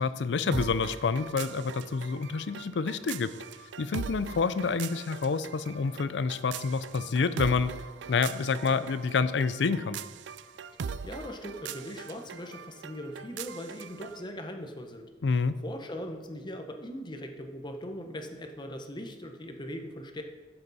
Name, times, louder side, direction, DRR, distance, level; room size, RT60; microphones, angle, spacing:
voice 1, 0.0-3.3 3.8-7.7 8.1-10.0 15.2-15.5, left 5 dB, 75° left, 14 dB, 0.5 m, -28 dB
sound 1, 0.5-14.2, right 6 dB, 90° right, 0.4 m, -41 dB
voice 2, 11.0-15.1 15.6-20.2, equal, 25° left, 5 dB, 1.0 m, -40 dB
12.0 x 7.9 x 4.1 m, 1.4 s
head